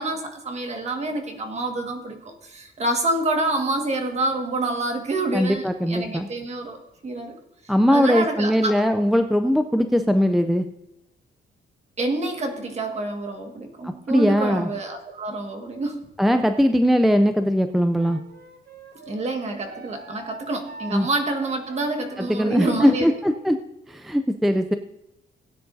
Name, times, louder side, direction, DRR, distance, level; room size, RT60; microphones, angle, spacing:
voice 1, 0.0-6.8 7.0-7.4 7.9-8.8 12.0-16.1 19.1-23.1, right 2 dB, 35° right, 4 dB, 1.7 m, -27 dB
voice 2, 5.3-6.3 7.7-10.6 13.8-14.7 16.2-18.2 20.9-21.1 22.2-23.6 23.9-24.7, equal, ahead, 8 dB, 0.3 m, -20 dB
Wind instrument woodwind instrument, 18.0-23.4, right 4 dB, 65° right, 1.4 m, -44 dB
17.5 x 9.3 x 2.6 m, 0.92 s
wide cardioid pair, 160°, 19 cm